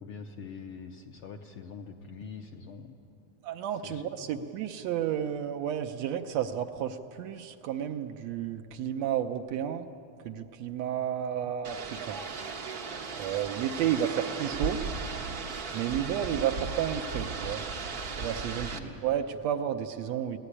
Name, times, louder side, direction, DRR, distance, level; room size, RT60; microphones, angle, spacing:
voice 1, 0.0-2.9 3.8-4.5 13.3-13.5 13.8-13.9 16.1-16.4 18.7-19.0, left 5 dB, 65° left, 3 dB, 1.4 m, -44 dB
voice 2, 3.4-9.8 10.2-12.2 13.2-14.8 15.7-17.6 18.2-20.4, right 10 dB, 75° right, 7 dB, 1.8 m, -32 dB
sound 1, 11.6-18.8, right 4 dB, 55° right, 1.0 m, -36 dB
23.5 x 17.5 x 9.9 m, 2.8 s
omnidirectional pair, 3.4 m